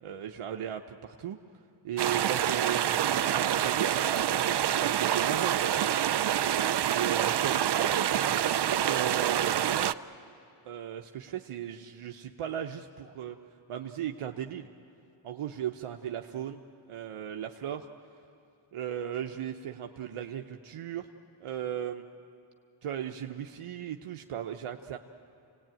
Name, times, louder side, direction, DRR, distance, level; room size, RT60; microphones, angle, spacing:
voice 1, 0.0-1.4 1.8-4.4 4.8-5.7 6.9-8.5 8.8-9.9 10.6-13.4 13.7-14.7 15.2-16.6 16.9-17.9 18.7-21.1 21.4-22.0 22.8-25.0, right 10 dB, 85° right, 4 dB, 0.9 m, -36 dB
sound 1, 2.0-9.9, right 10 dB, 55° right, 0.6 m, -27 dB
27.0 x 18.5 x 9.0 m, 2.5 s
wide cardioid pair, 100°, 50 cm